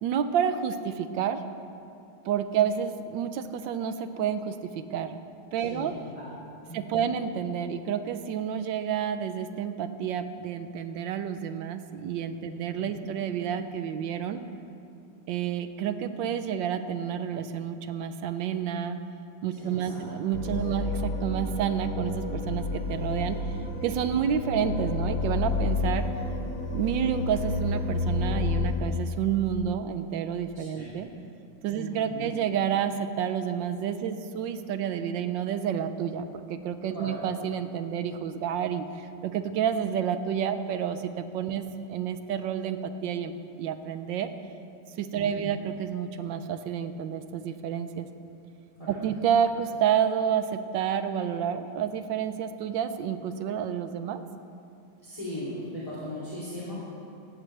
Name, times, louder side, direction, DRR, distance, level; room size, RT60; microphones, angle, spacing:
voice 1, 0.0-1.4 2.2-5.2 5.5-5.9 6.7-14.4 15.3-19.0 19.4-23.4 23.8-26.0 26.7-31.1 31.6-44.3 45.0-48.1 48.9-54.2, right 8 dB, 75° right, 10 dB, 1.3 m, -29 dB
voice 2, 5.6-6.3 6.7-7.1 12.4-13.1 19.5-20.2 20.6-20.8 30.5-30.9 31.7-32.3 36.9-37.2 45.1-45.6 48.8-49.0 55.0-56.7, left 1 dB, 15° left, -9 dB, 2.8 m, -39 dB
sound 1, 20.3-28.8, left 3 dB, 85° left, 2.3 m, -30 dB
17.0 x 13.5 x 3.3 m, 2.6 s
omnidirectional pair, 2.1 m